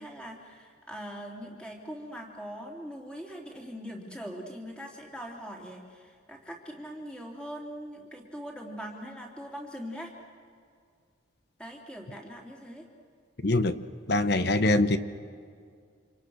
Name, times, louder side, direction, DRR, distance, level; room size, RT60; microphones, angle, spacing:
voice 1, 0.0-10.1 11.6-12.9, equal, 5° left, 0 dB, 3.3 m, -41 dB
voice 2, 13.4-13.8 14.1-15.0, left 2 dB, 50° left, 12 dB, 1.0 m, -23 dB
29.5 x 26.5 x 6.5 m, 2.2 s
head